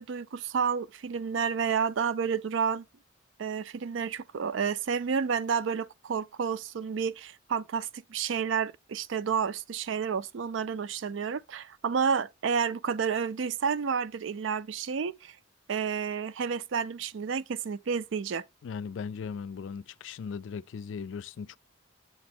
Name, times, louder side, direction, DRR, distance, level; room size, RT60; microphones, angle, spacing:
voice 1, 0.0-2.8 3.4-15.4 15.7-18.4, right 6 dB, 70° right, 0.4 m, -30 dB
voice 2, 18.6-21.6, left 6 dB, 65° left, 0.3 m, -38 dB
7.7 x 3.0 x 5.9 m
head